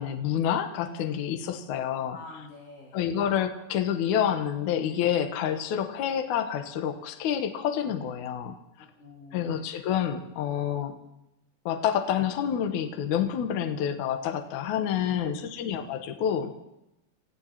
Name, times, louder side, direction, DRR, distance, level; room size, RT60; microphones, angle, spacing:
voice 1, 0.0-2.2 2.9-8.6 9.3-11.0 11.7-16.5, left 9 dB, 65° left, 6 dB, 2.2 m, -28 dB
voice 2, 2.1-3.0 9.0-9.5 15.0-15.5, left 3 dB, 45° left, -3 dB, 2.8 m, -44 dB
28.0 x 15.5 x 2.9 m, 0.92 s
omnidirectional pair, 4.2 m